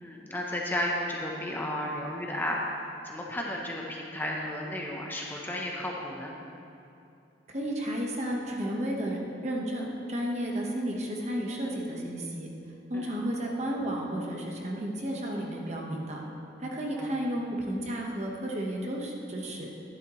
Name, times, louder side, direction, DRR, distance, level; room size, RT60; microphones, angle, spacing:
voice 1, 0.0-6.3 12.9-13.1 17.0-17.1, left 1 dB, 10° left, -2 dB, 0.8 m, -33 dB
voice 2, 7.5-12.5 12.9-16.2 16.6-19.7, right 1 dB, 40° right, -1 dB, 1.2 m, -32 dB
11.5 x 11.0 x 3.1 m, 2.7 s
head